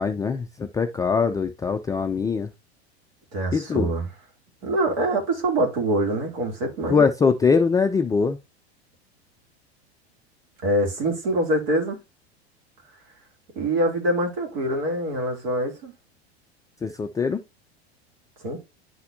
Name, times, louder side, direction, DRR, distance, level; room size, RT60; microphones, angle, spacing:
voice 1, 0.0-2.5 3.5-3.9 6.9-8.4 16.8-17.4, left 5 dB, 10° left, 0.3 m, -22 dB
voice 2, 3.3-4.0 4.6-7.0 10.6-12.0 13.6-15.9 18.4-18.6, right 1 dB, 60° right, 2.5 m, -24 dB
11.0 x 4.1 x 2.5 m
hypercardioid pair, 85°, 33 cm